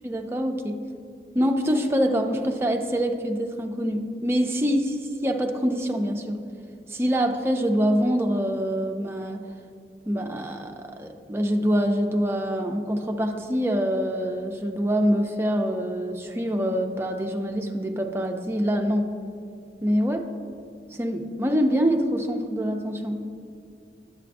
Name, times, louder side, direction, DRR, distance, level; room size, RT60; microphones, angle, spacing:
voice 1, 0.0-0.8 1.3-6.4 6.9-9.4 10.1-19.1 19.8-20.2 20.9-23.3, equal, 15° right, 4 dB, 0.4 m, -25 dB
9.0 x 7.5 x 2.5 m, 2.4 s
head